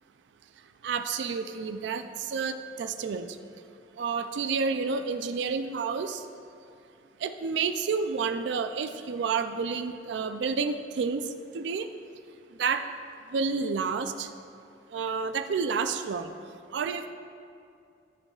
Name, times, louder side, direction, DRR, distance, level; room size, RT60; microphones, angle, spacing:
voice 1, 0.8-3.4 4.0-6.2 7.2-11.3 11.5-11.9 12.6-12.8 13.3-14.3 14.9-16.3 16.7-17.1, right 5 dB, 70° right, 9 dB, 0.4 m, -30 dB
12.5 x 5.4 x 2.4 m, 2.5 s
head